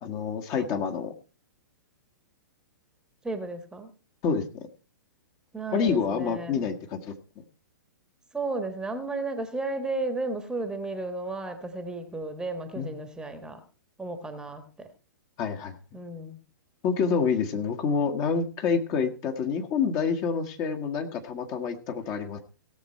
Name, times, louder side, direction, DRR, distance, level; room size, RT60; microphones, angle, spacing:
voice 1, 0.0-1.1 4.2-4.6 5.7-7.1 12.7-12.9 15.4-15.8 16.8-22.4, left 6 dB, 30° left, 5 dB, 1.7 m, -27 dB
voice 2, 3.2-3.9 5.5-6.7 8.3-13.6 14.0-14.9 15.9-16.4, right 2 dB, 5° right, 7 dB, 1.4 m, -33 dB
17.5 x 7.3 x 4.4 m, 0.36 s
figure-of-eight pair, 110°, 11 cm